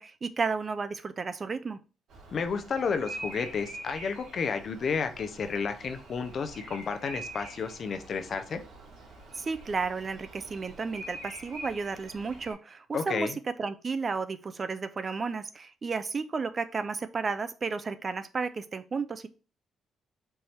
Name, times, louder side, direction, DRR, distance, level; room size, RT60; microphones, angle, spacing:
voice 1, 0.0-1.8 9.4-19.3, right 4 dB, 35° right, 12 dB, 0.4 m, -33 dB
Bird vocalization bird call bird song, 2.1-12.5, right 2 dB, 75° right, 2.4 m, -45 dB
voice 2, 2.3-8.6 12.9-13.4, left 5 dB, 55° left, 8 dB, 0.6 m, -31 dB
4.5 x 2.7 x 3.3 m, 0.34 s
cardioid pair, 90°, 0 cm